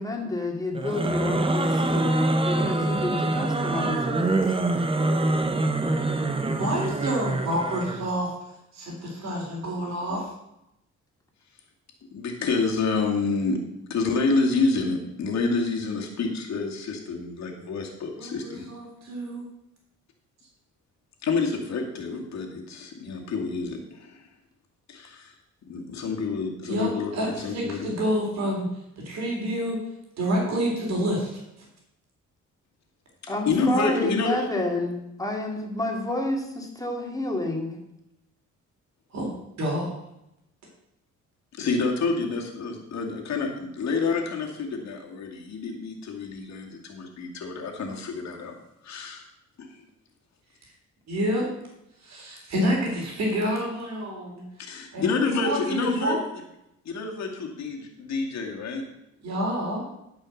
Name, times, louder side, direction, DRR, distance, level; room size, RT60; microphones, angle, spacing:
voice 1, 0.0-4.4 33.3-37.8, left 1 dB, 10° left, 1 dB, 2.4 m, -29 dB
sound 1, 0.7-8.1, right 2 dB, 20° right, 1.1 m, -25 dB
voice 2, 6.6-8.3 8.7-10.3 18.2-19.4 26.7-28.7 29.0-29.8 30.2-31.4 39.1-39.3 39.6-39.9 51.1-51.5 52.0-54.4 54.9-56.2 59.2-59.8, equal, 65° right, -1 dB, 3.6 m, -28 dB
voice 3, 12.1-13.6 13.9-18.7 21.2-24.3 24.9-25.3 25.7-27.9 33.2-34.5 41.5-48.5 48.8-49.2 49.6-49.8 54.6-56.2 56.8-58.8, left 4 dB, 65° left, 1 dB, 2.4 m, -28 dB
13.0 x 5.5 x 6.5 m, 0.85 s
cardioid pair, 115°, 29 cm